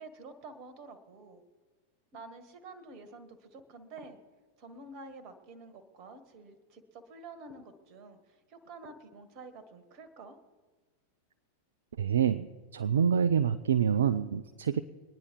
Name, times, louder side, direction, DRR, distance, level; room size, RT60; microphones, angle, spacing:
voice 1, 0.0-1.4 2.1-4.2 4.6-10.4, right 3 dB, 40° right, 10 dB, 1.7 m, -49 dB
voice 2, 12.0-12.5 12.7-14.8, right 8 dB, 65° right, 11 dB, 0.4 m, -26 dB
22.5 x 9.9 x 4.8 m, 1.4 s
figure-of-eight pair, 90°, 0 cm